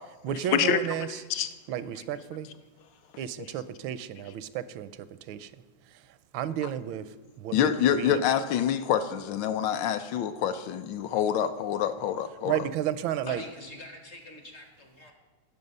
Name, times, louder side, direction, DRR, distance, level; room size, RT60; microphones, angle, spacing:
voice 1, 0.2-1.2 1.7-2.5 3.2-5.5 5.9-8.2 12.4-13.4, right 10 dB, 85° right, 14 dB, 1.3 m, -33 dB
voice 2, 7.5-12.5, left 9 dB, 75° left, 10 dB, 1.3 m, -26 dB
voice 3, 13.3-15.1, left 2 dB, 50° left, 4 dB, 0.9 m, -43 dB
14.5 x 5.7 x 5.4 m, 1.2 s
omnidirectional pair, 2.1 m